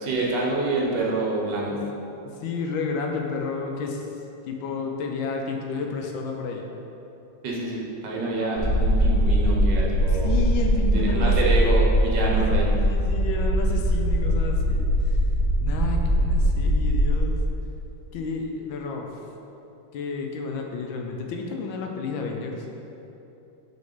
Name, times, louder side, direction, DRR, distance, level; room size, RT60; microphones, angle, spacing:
voice 1, 0.0-1.8 7.4-10.4 10.9-12.7, right 2 dB, 65° right, -3 dB, 1.5 m, -27 dB
voice 2, 2.2-4.1 4.4-6.7 10.1-11.4 12.3-15.2 15.6-17.4 18.1-19.1 19.9-22.7, left 4 dB, 80° left, 2 dB, 1.3 m, -31 dB
sound 1, 8.6-17.2, equal, 50° right, 1.2 m, -21 dB
5.7 x 5.2 x 3.7 m, 2.9 s
omnidirectional pair, 2.1 m